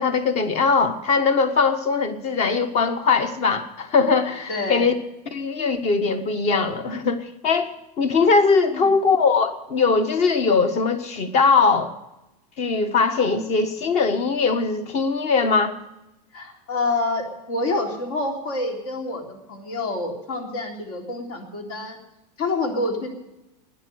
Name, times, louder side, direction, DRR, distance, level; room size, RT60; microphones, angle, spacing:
voice 1, 0.0-4.9 5.3-11.9 12.6-15.7, left 4 dB, 30° left, 10 dB, 1.4 m, -21 dB
voice 2, 4.5-4.9 8.7-8.9 16.3-22.0 22.4-23.1, left 2 dB, 60° left, 3 dB, 3.6 m, -27 dB
13.5 x 10.5 x 7.9 m, 0.93 s
supercardioid pair, 155°, 21 cm